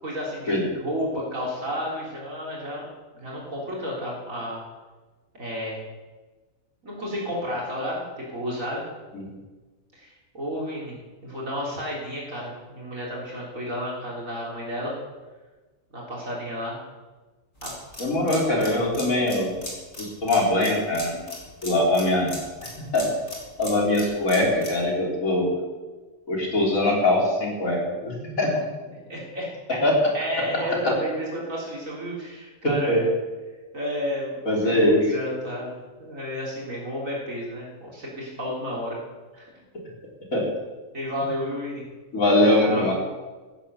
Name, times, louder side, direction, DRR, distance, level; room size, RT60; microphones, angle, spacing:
voice 1, 0.0-2.9 3.1-4.6 5.4-5.8 6.8-8.9 9.9-11.0 11.2-15.0 15.9-16.8 17.6-17.7 28.9-29.8 30.1-33.0 33.7-39.0 39.3-39.5 40.9-41.8 42.4-42.9, equal, 75° right, -4 dB, 3.9 m, -32 dB
sound 1, 17.6-24.8, left 1 dB, 35° left, 3.6 m, -39 dB
voice 2, 18.0-19.6 20.0-21.2 21.6-22.3 22.6-23.1 23.6-25.5 26.3-28.5 29.8-29.9 30.5-30.7 32.9-33.0 34.5-35.1 40.3-40.4 42.1-42.9, left 1 dB, 85° left, -2 dB, 4.2 m, -22 dB
14.5 x 10.5 x 6.9 m, 1.3 s
omnidirectional pair, 1.4 m